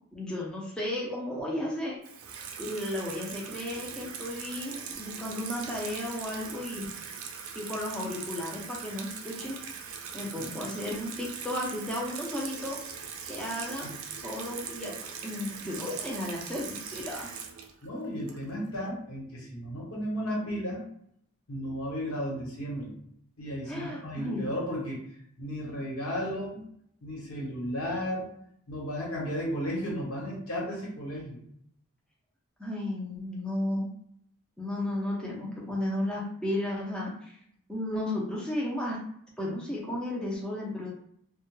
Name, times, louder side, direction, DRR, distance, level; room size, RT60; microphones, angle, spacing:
voice 1, 0.1-2.0 2.6-6.9 7.5-9.6 10.1-12.8 13.2-13.9 14.2-15.0 15.2-17.3 23.7-24.5 32.6-33.9 34.6-37.3 37.7-39.0 39.4-40.9, left 1 dB, 5° left, -4 dB, 0.4 m, -34 dB
Water tap faucet / Sink (filling or washing), 2.0-18.7, right 6 dB, 75° right, 0.4 m, -41 dB
voice 2, 17.8-20.8 21.5-22.9 23.4-25.0 25.4-26.6 27.0-28.3 28.7-31.4, equal, 80° left, -4 dB, 1.1 m, -34 dB
2.2 x 2.1 x 3.0 m, 0.69 s
head